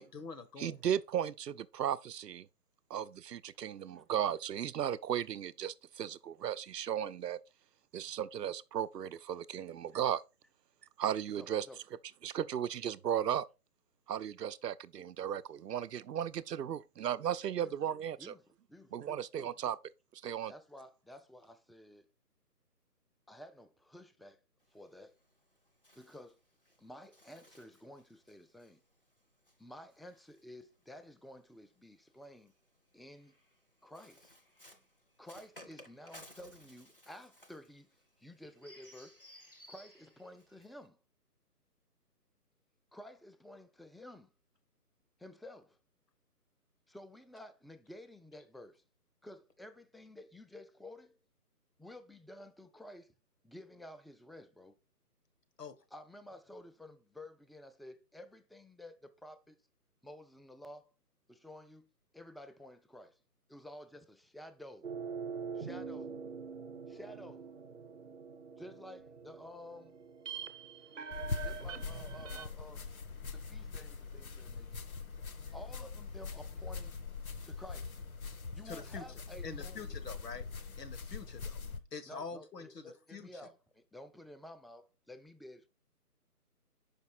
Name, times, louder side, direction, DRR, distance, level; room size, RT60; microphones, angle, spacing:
voice 1, 0.0-0.8 55.6-55.7 78.6-79.0 79.4-80.5 80.8-81.6 81.9-83.3, left 5 dB, 85° left, 1.4 m, -45 dB
voice 2, 0.6-2.5 2.9-7.4 7.9-10.2 11.0-11.7 12.2-13.4 14.1-18.3 18.9-19.8 20.1-20.5, right 9 dB, 80° right, 0.6 m, -35 dB
voice 3, 11.3-11.8 17.6-17.8 18.2-18.4 18.7-19.5 20.5-22.1 23.3-24.4 24.7-25.2 26.0-26.4 26.8-28.8 29.6-32.5 32.9-33.3 33.8-34.3 35.2-37.9 38.2-39.2 39.7-41.0 42.9-44.3 45.2-45.8 46.9-48.8 49.2-51.2 51.8-53.1 53.4-54.8 55.9-59.6 60.0-60.9 61.3-61.9 62.1-63.2 63.5-64.9 65.5-66.2 66.9-67.5 68.6-69.9 71.4-72.9 73.3-74.7 75.5-77.0 77.4-78.0 78.5-79.8 82.1-85.7, left 1 dB, ahead, 0.3 m, -52 dB
Bird, 24.6-31.1 32.1-40.9, equal, 35° left, 0.6 m, -59 dB
sound 1, 64.8-72.5, right 6 dB, 50° right, 0.8 m, -44 dB
sound 2, 71.1-81.8, left 4 dB, 60° left, 0.9 m, -42 dB
5.9 x 5.2 x 4.2 m
hypercardioid pair, 175°, 47 cm